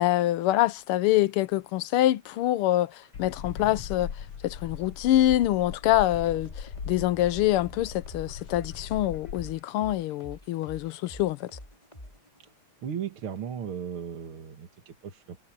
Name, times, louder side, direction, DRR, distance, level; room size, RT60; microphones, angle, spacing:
voice 1, 0.0-4.1 4.4-11.6, left 14 dB, 85° left, 1.6 m, -25 dB
sound 1, 2.8-12.6, left 1 dB, 15° left, 4.6 m, -48 dB
sound 2, 3.1-9.6, left 7 dB, 70° left, 1.9 m, -39 dB
voice 2, 12.8-15.5, right 8 dB, 75° right, 2.5 m, -36 dB
omnidirectional pair, 2.4 m